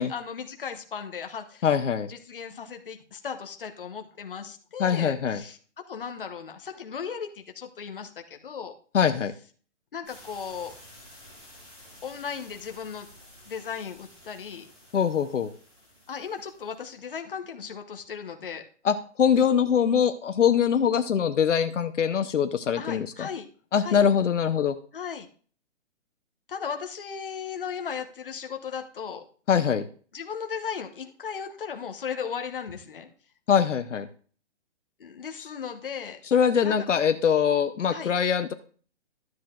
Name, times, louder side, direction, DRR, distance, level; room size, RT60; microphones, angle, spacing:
voice 1, 0.0-1.6 2.1-5.6 5.9-8.7 9.9-10.7 12.0-13.1 13.5-14.7 16.1-18.6 22.8-23.5 23.8-24.0 24.9-25.3 26.5-29.2 30.1-33.1 35.0-36.2 36.6-36.7 37.9-38.1, left 7 dB, 45° left, 5 dB, 1.1 m, -36 dB
voice 2, 1.6-2.1 4.8-5.4 8.9-9.3 14.9-15.5 18.8-23.3 23.7-24.7 29.5-29.9 33.5-34.1 36.3-38.5, left 7 dB, 75° left, 9 dB, 0.9 m, -23 dB
sound 1, 10.0-16.9, left 1 dB, 25° right, 5.4 m, -52 dB
12.5 x 7.8 x 2.4 m, 0.42 s
hypercardioid pair, 180°, 37 cm